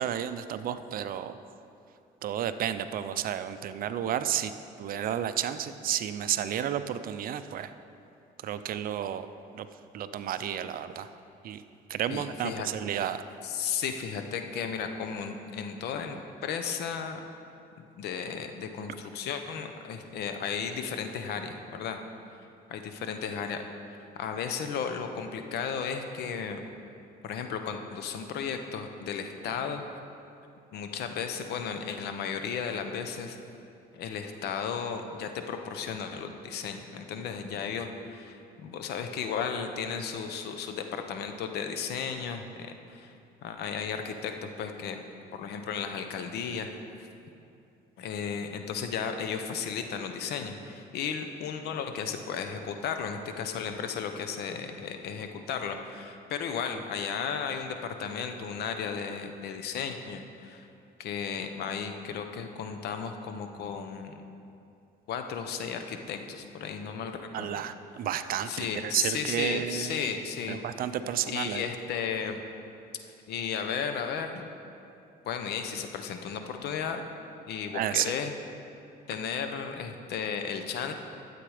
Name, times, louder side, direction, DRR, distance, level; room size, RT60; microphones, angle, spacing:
voice 1, 0.0-1.4 2.2-4.5 4.8-7.7 8.4-9.3 9.5-9.7 9.9-11.1 11.4-11.6 11.9-13.2 67.3-70.1 70.5-71.7 77.7-78.1, right 10 dB, 60° right, 11 dB, 0.5 m, -31 dB
voice 2, 12.1-12.7 13.4-17.2 17.8-22.0 22.7-26.6 27.2-29.8 30.7-33.4 33.9-43.1 43.4-45.0 45.3-47.1 48.0-60.7 61.0-64.2 65.1-67.6 68.5-70.6 71.3-72.4 73.3-74.5 75.2-77.1 77.5-78.3 79.1-80.9, left 6 dB, 75° left, 6 dB, 0.9 m, -34 dB
12.0 x 7.9 x 5.0 m, 2.6 s
cardioid pair, 110°, 17 cm